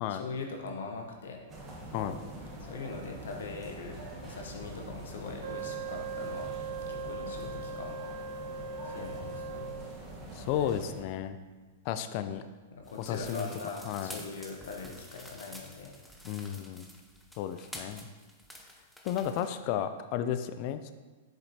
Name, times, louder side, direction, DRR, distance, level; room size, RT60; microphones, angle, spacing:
voice 1, 0.1-1.4 2.6-6.5 6.9-8.4 8.8-9.7 12.7-15.9, left 4 dB, 80° left, 2 dB, 0.9 m, -41 dB
sound 1, 1.5-11.0, right 1 dB, 25° right, 1.3 m, -44 dB
Wind instrument woodwind instrument, 5.4-10.0, right 4 dB, 65° right, 0.8 m, -39 dB
voice 2, 10.3-11.4 11.9-12.4 13.0-13.5 13.9-14.2 16.2-16.9 17.4-18.1 19.0-20.9, left 10 dB, 45° left, 10 dB, 0.3 m, -33 dB
sound 2, 12.8-19.5, equal, ahead, 0.6 m, -49 dB
7.5 x 4.9 x 2.8 m, 1.3 s
hypercardioid pair, 130°, 0 cm